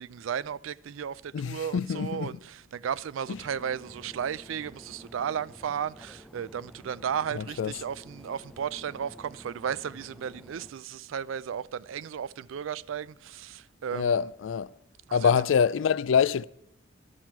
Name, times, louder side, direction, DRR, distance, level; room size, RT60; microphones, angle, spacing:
voice 1, 0.0-14.3 15.1-15.3, right 8 dB, 80° right, 0.4 m, -34 dB
voice 2, 1.3-2.4 3.3-3.4 7.3-7.7 13.9-14.7 15.1-16.4, left 7 dB, 70° left, 0.4 m, -25 dB
sound 1, 3.2-10.7, equal, ahead, 0.7 m, -51 dB
11.0 x 7.4 x 4.5 m
head